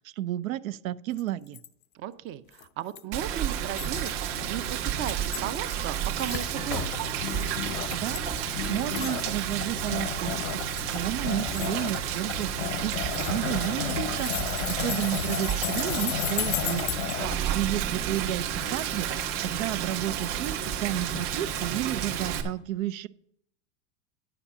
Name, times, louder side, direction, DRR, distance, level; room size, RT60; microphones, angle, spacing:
voice 1, 0.0-1.6 7.9-16.9 17.5-23.1, right 13 dB, 80° right, 18 dB, 0.6 m, -32 dB
sound 1, 1.2-1.3 1.5-1.7 2.6-3.2 3.8-4.1 4.9-5.7 6.2-6.6 7.6-8.4 8.9-9.2 10.4-10.9 11.5-11.7 12.9-13.7 14.0-17.1, left 14 dB, 25° left, 0.4 m, -36 dB
voice 2, 1.9-7.0 17.2-17.6, right 11 dB, 30° right, 15 dB, 0.5 m, -36 dB
Rain, 3.1-22.4, right 9 dB, 60° right, 1.8 m, -31 dB
sound 2, 6.7-17.4, left 10 dB, 80° left, 0.8 m, -35 dB
9.9 x 5.8 x 6.7 m, 0.72 s
supercardioid pair, 130°, 40 cm